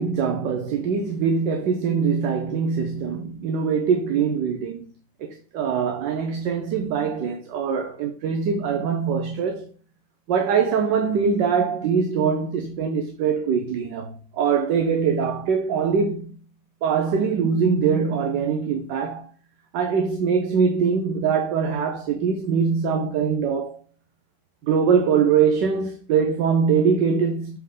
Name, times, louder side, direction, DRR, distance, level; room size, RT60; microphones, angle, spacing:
voice 1, 0.0-4.8 5.2-9.7 10.3-16.3 16.8-19.3 19.7-23.8 24.7-27.6, right 6 dB, 75° right, 1.3 m, -23 dB
7.7 x 3.5 x 3.7 m
omnidirectional pair, 2.0 m